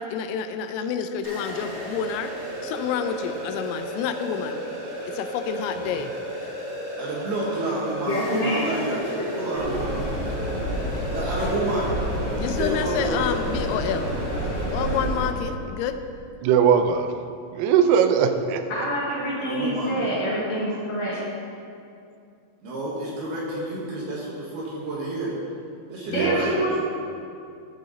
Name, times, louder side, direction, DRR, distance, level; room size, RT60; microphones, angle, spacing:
voice 1, 0.0-2.3 2.6-4.6 5.1-6.1 12.4-14.1 14.4-16.0, left 7 dB, 90° left, 8 dB, 3.3 m, -29 dB
sound 1, 1.2-14.9, right 1 dB, 50° right, 3.8 m, -34 dB
voice 2, 7.0-9.9 11.1-11.9 12.3-13.3 19.4-20.1 22.6-25.4 25.9-26.5, right 1 dB, 65° right, -5 dB, 2.8 m, -29 dB
voice 3, 8.1-8.6 18.7-21.2 26.1-26.8, equal, 60° left, -8 dB, 2.4 m, -26 dB
sound 2, 9.5-15.3, equal, 45° left, 2.4 m, -29 dB
voice 4, 16.4-17.2 17.5-18.6 26.1-26.4, right 7 dB, 90° right, 8 dB, 3.3 m, -20 dB
14.5 x 5.7 x 4.0 m, 2.5 s
omnidirectional pair, 5.8 m